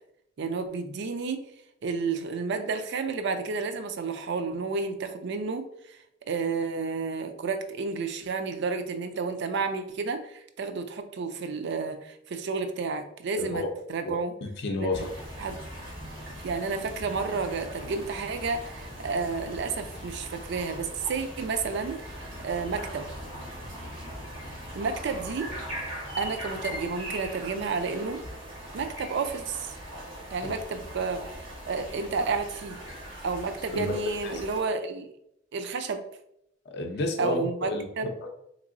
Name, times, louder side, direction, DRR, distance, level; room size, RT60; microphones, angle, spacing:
voice 1, 0.4-1.5 1.8-6.0 6.3-13.6 13.9-14.4 14.8-15.1 15.4-15.6 16.4-22.1 22.4-23.1 24.8-25.5 26.2-28.2 28.7-29.7 30.3-32.8 33.2-35.1 35.5-36.0 37.2-38.1, right 4 dB, 60° right, 9 dB, 0.4 m, -31 dB
voice 2, 13.4-13.7 14.0-15.1 30.4-30.5 33.7-34.0 34.3-34.4 36.7-37.9 38.2-38.3, left 2 dB, 55° left, 3 dB, 0.5 m, -31 dB
sound 1, 14.9-34.6, equal, 85° right, 1.3 m, -40 dB
3.6 x 2.9 x 2.5 m, 0.76 s
head